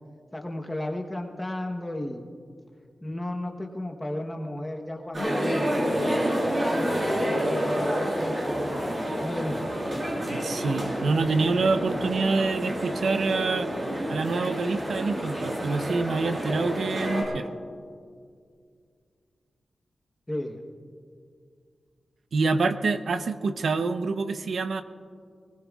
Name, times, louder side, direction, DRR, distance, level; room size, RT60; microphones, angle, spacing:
voice 1, 0.3-2.3 3.0-6.2 6.7-9.7 20.3-20.6, left 1 dB, 10° left, 3 dB, 1.1 m, -34 dB
sound 1, 5.1-17.2, equal, 40° right, 5.1 m, -29 dB
voice 2, 10.2-13.7 14.1-17.5 22.3-24.8, right 4 dB, 75° right, 9 dB, 0.8 m, -26 dB
23.5 x 20.0 x 2.4 m, 2.1 s
wide cardioid pair, 135°, 0 cm